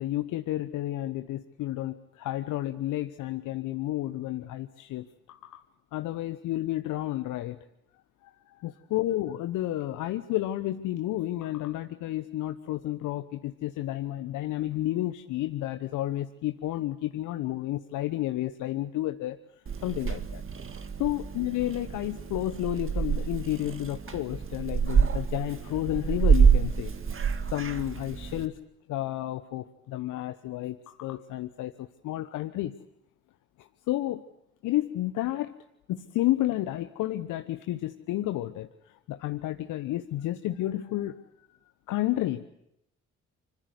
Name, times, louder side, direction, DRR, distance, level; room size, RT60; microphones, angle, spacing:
voice 1, 0.0-5.6 5.9-7.6 8.2-19.4 19.8-20.4 21.0-26.9 27.5-28.6 28.9-32.8 33.6-34.2 34.6-35.6 35.9-41.5 41.9-42.5, left 15 dB, 65° left, 10 dB, 1.0 m, -31 dB
Purr / Meow, 19.7-28.5, right 6 dB, 40° right, 2.1 m, -27 dB
26.0 x 25.5 x 8.1 m, 0.81 s
hypercardioid pair, 45°, 33 cm